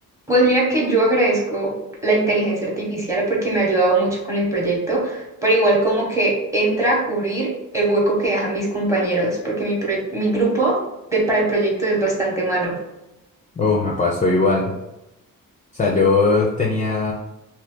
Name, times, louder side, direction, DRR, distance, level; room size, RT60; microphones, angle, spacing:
voice 1, 0.3-1.7 2.0-10.8 11.1-12.8, right 2 dB, 10° right, -4 dB, 0.8 m, -20 dB
voice 2, 13.6-14.7 15.7-17.1, left 3 dB, 25° left, -3 dB, 0.4 m, -19 dB
2.7 x 2.4 x 3.6 m, 0.94 s
wide cardioid pair, 155°, 34 cm